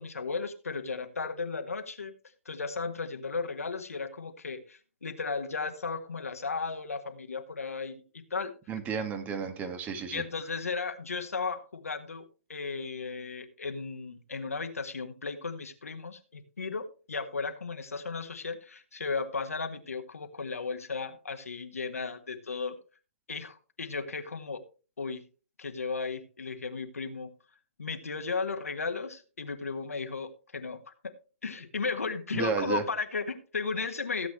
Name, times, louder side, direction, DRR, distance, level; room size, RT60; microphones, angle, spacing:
voice 1, 0.0-2.1 2.4-8.5 10.1-22.7 23.3-24.6 25.0-25.3 25.6-27.3 27.8-30.9 31.4-34.3, left 4 dB, 80° left, 7 dB, 1.7 m, -35 dB
voice 2, 8.7-10.2 32.3-32.8, right 5 dB, 20° right, 8 dB, 1.6 m, -32 dB
16.5 x 8.0 x 3.1 m, 0.35 s
figure-of-eight pair, 130°, 8 cm